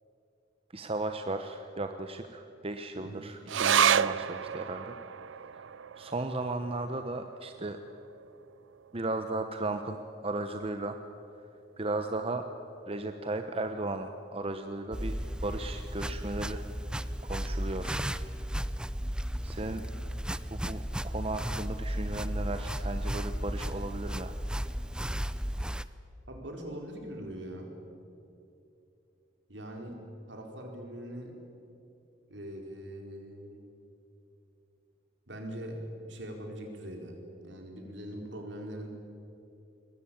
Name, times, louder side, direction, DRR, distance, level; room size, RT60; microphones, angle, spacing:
voice 1, 0.7-5.0 5.5-5.7 6.0-7.8 8.9-10.0 10.2-11.0 11.8-12.4 12.9-16.6 17.2-18.1 19.4-19.8 20.5-24.4, right 2 dB, 30° right, 7 dB, 0.9 m, -35 dB
voice 2, 2.9-3.3 26.3-27.8 29.5-30.0 30.3-31.4 32.3-33.6 35.3-38.9, right 1 dB, 65° right, 2 dB, 4.2 m, -42 dB
sound 1, 3.5-10.3 10.6-10.7 11.0-11.7 12.2-12.3, right 8 dB, 80° right, 0.5 m, -32 dB
sound 2, 14.9-25.8, equal, 5° right, 0.5 m, -34 dB
22.5 x 20.5 x 8.6 m, 2.8 s
head